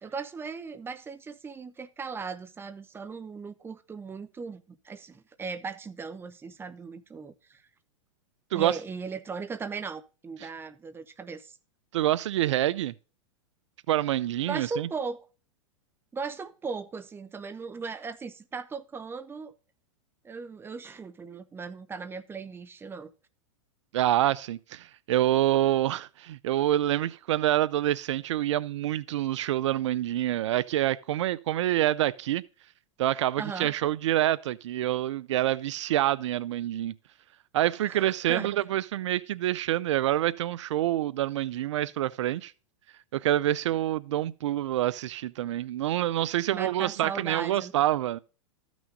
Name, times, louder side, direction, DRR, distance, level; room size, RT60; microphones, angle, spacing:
voice 1, 0.0-7.7 8.5-11.6 14.5-15.3 16.1-19.5 20.2-23.1 33.4-33.7 37.9-38.5 46.5-47.7, right 5 dB, 15° right, 0.9 m, -38 dB
voice 2, 11.9-12.9 13.9-14.9 23.9-32.4 33.0-36.9 37.5-42.5 43.1-48.2, right 13 dB, 70° right, 0.5 m, -27 dB
13.5 x 6.2 x 3.8 m
hypercardioid pair, 115°, 16 cm